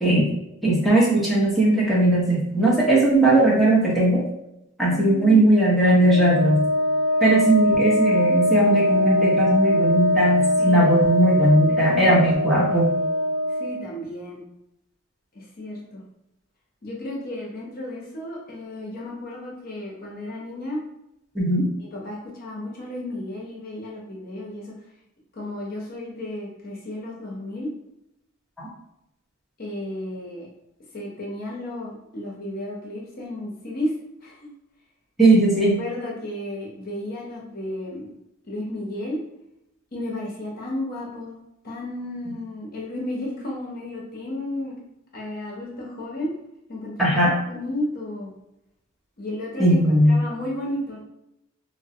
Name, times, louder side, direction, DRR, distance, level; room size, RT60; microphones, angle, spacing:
voice 1, 0.6-4.2 4.8-6.6 7.2-12.9 21.3-21.7 28.6-28.7 35.2-35.7 47.0-47.3 49.6-50.2, right 1 dB, ahead, -7 dB, 0.8 m, -18 dB
voice 2, 4.9-5.4 10.6-10.9 11.5-12.2 13.5-14.4 15.3-16.0 16.8-20.8 21.9-24.7 25.3-27.7 29.6-30.5 30.9-33.9 34.2-34.5 35.8-38.1 38.4-39.2 39.9-41.4 41.6-44.8 45.1-46.3 46.7-47.2 47.5-48.3 49.2-49.8 50.1-51.0, left 1 dB, 45° left, -3 dB, 0.7 m, -33 dB
Wind instrument woodwind instrument, 6.0-13.9, left 1 dB, 70° left, 0.3 m, -22 dB
3.8 x 2.0 x 2.7 m, 0.84 s
head